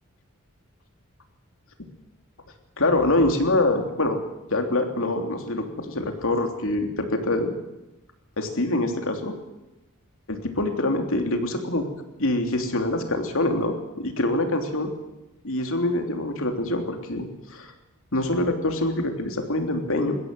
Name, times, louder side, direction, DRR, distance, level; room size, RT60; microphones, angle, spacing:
voice 1, 2.8-4.2 4.5-7.5 8.4-9.3 10.3-11.8 12.2-14.9 15.4-17.7 18.1-20.2, left 2 dB, 65° left, 4 dB, 3.3 m, -25 dB
21.5 x 16.0 x 7.9 m, 1.0 s
head